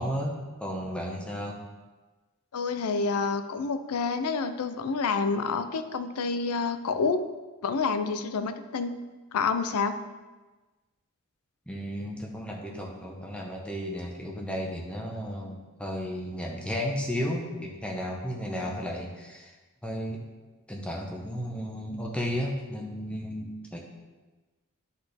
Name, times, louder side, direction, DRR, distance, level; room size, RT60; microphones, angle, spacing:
voice 1, 0.0-1.6 11.7-19.5 19.8-20.2 20.7-23.8, equal, 5° left, -1 dB, 0.8 m, -33 dB
voice 2, 2.5-7.2 7.6-9.0 9.3-10.0, left 4 dB, 80° left, 9 dB, 0.5 m, -28 dB
10.0 x 4.1 x 3.4 m, 1.2 s
head